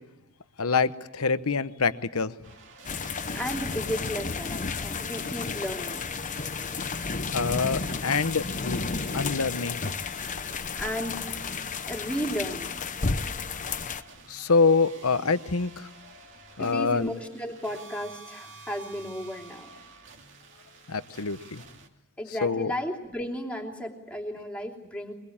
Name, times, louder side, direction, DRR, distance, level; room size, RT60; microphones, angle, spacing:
voice 1, 0.6-2.3 7.3-8.8 9.1-9.8 14.3-15.9 16.6-17.1 20.9-21.6 22.4-22.7, left 4 dB, 70° left, 13 dB, 1.0 m, -25 dB
sound 1, 2.4-21.9, right 1 dB, 55° right, 2.7 m, -50 dB
sound 2, 2.8-14.0, left 4 dB, 35° left, 0.9 m, -32 dB
voice 2, 3.3-6.1 10.7-11.4 11.9-12.9 16.6-19.7 22.2-25.1, equal, 5° left, 1 dB, 3.1 m, -34 dB
23.5 x 22.0 x 8.8 m, 0.94 s
head